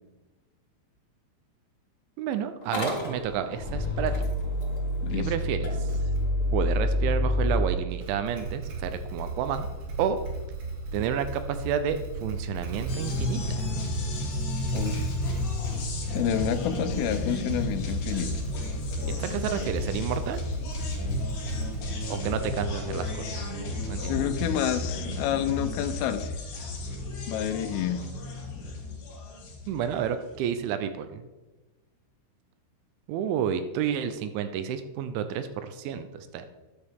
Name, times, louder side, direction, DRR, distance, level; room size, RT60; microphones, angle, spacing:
voice 1, 2.2-4.2 5.1-5.7 6.5-9.7 10.0-10.2 10.9-13.7 19.1-20.4 22.1-23.5 23.9-24.2 29.7-31.2 33.1-36.5, right 8 dB, 80° right, 9 dB, 2.9 m, -30 dB
Motor vehicle (road) / Engine starting, 2.6-7.6, left 1 dB, 75° left, 0.7 m, -27 dB
voice 2, 5.0-5.3 14.7-15.1 16.1-18.3 24.1-26.4 27.3-28.1, left 10 dB, 90° left, 10 dB, 3.4 m, -29 dB
Motorcycle / Engine starting, 5.9-6.6 7.9-22.8, right 3 dB, 60° right, 2.6 m, -36 dB
sound 1, 12.9-30.3, left 2 dB, 55° left, 3.7 m, -33 dB
12.5 x 10.5 x 3.6 m, 1.2 s
omnidirectional pair, 5.7 m